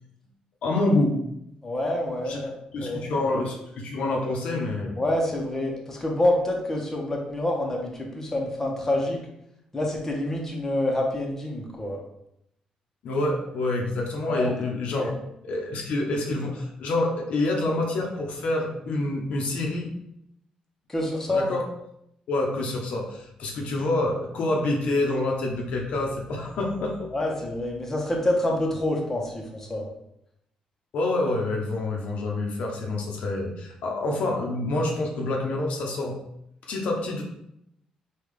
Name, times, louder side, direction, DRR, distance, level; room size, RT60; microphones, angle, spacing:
voice 1, 0.6-1.2 2.3-2.4 2.7-5.0 13.0-15.1 15.4-19.9 21.3-21.6 22.3-27.1 30.9-36.2 36.6-37.2, left 2 dB, 70° left, 0 dB, 0.6 m, -27 dB
voice 2, 1.6-2.5 2.8-3.2 5.0-9.2 9.7-12.0 14.3-14.5 14.9-15.1 20.9-21.5 27.1-29.9, left 1 dB, 15° left, -1 dB, 0.8 m, -27 dB
3.7 x 2.3 x 3.2 m, 0.78 s
cardioid pair, 100°, 2 cm